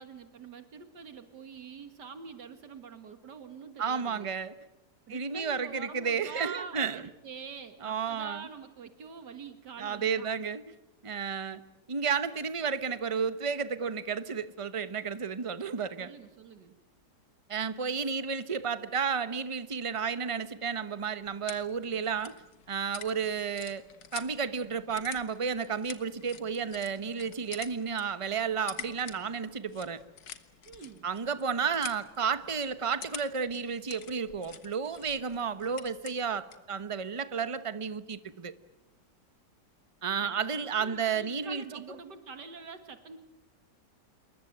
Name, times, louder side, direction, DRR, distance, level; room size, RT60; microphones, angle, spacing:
voice 1, 0.0-4.3 5.1-10.3 16.0-16.8 30.6-31.1 40.2-43.2, right 5 dB, 75° right, 2.2 m, -46 dB
voice 2, 3.8-4.5 5.1-7.0 7.8-8.5 9.8-10.7 11.0-11.6 11.9-16.1 17.5-22.3 22.7-23.8 24.1-30.0 31.0-38.5 40.0-41.6, right 6 dB, 25° right, 0.9 m, -32 dB
sound 1, 20.9-36.7, left 8 dB, 90° left, 2.1 m, -48 dB
27.5 x 22.5 x 9.2 m
omnidirectional pair, 1.8 m